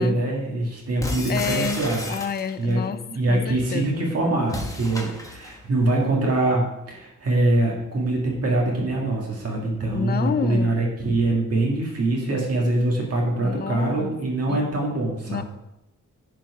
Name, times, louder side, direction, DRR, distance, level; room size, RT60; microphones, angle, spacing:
voice 1, 0.0-2.0 2.6-2.8 3.1-15.4, right 2 dB, 50° right, -2 dB, 2.0 m, -23 dB
sound 1, 1.0-2.7 4.5-5.6, left 2 dB, 10° left, 1.2 m, -32 dB
voice 2, 1.3-1.8 2.1-3.0 3.3-4.0 9.9-10.8 13.4-14.1 14.5-14.6 15.3-15.4, left 7 dB, 30° left, 13 dB, 0.4 m, -28 dB
10.5 x 4.5 x 4.7 m, 0.87 s
wide cardioid pair, 135°, 32 cm